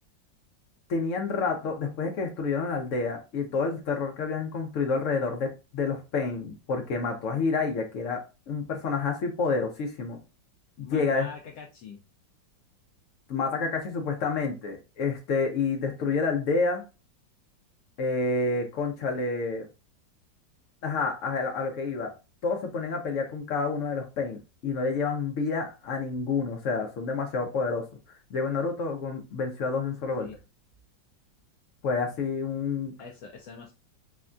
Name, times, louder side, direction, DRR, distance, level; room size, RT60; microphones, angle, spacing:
voice 1, 0.9-10.2 10.8-11.3 13.3-16.8 18.0-19.7 20.8-22.1 22.4-27.9 28.3-30.3 31.8-32.9, left 4 dB, 90° left, 2 dB, 0.6 m, -29 dB
voice 2, 10.8-12.0 30.2-30.4 33.0-33.7, left 5 dB, 70° left, -1 dB, 1.0 m, -43 dB
3.4 x 2.2 x 2.4 m, 0.29 s
omnidirectional pair, 2.0 m